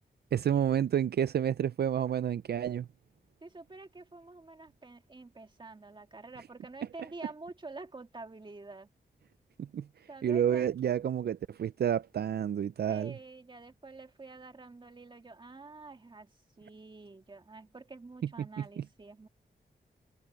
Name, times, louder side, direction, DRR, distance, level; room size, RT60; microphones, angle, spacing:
voice 1, 0.3-2.9 9.6-9.9 10.2-13.1 18.4-18.8, right 9 dB, 70° right, 0.4 m, -30 dB
voice 2, 3.4-8.9 10.1-10.7 12.9-19.3, right 3 dB, 30° right, 2.0 m, -48 dB
wide cardioid pair, 140°, 17 cm